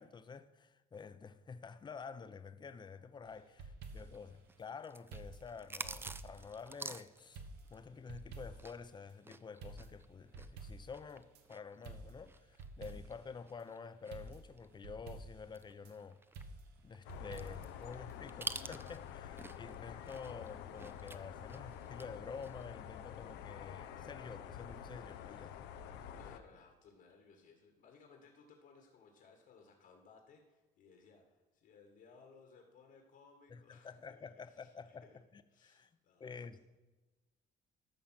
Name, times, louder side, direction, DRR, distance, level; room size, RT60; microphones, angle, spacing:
voice 1, 0.0-3.6 3.9-7.4 7.7-16.2 16.8-25.6 33.5-35.1 35.3-35.9 36.2-36.6, left 5 dB, 25° left, 0.7 m, -49 dB
sound 1, 3.3-4.3 5.1-6.9 7.3-8.8 9.1-9.2 9.6-11.4 11.8-13.3 13.6-13.7 14.1-15.9 16.3-17.8 18.1-18.2, right 3 dB, 75° right, 1.4 m, -51 dB
sound 2, 3.9-8.9 9.2-14.7 15.1-15.2 15.5-19.8 20.0-22.1 22.4-22.6, right 3 dB, 15° right, 0.5 m, -48 dB
sound 3, 17.0-26.4, left 9 dB, 85° left, 0.8 m, -48 dB
voice 2, 26.1-35.2 35.5-36.5, left 5 dB, 70° left, 2.0 m, -62 dB
14.0 x 5.5 x 5.9 m
cardioid pair, 110°, 17 cm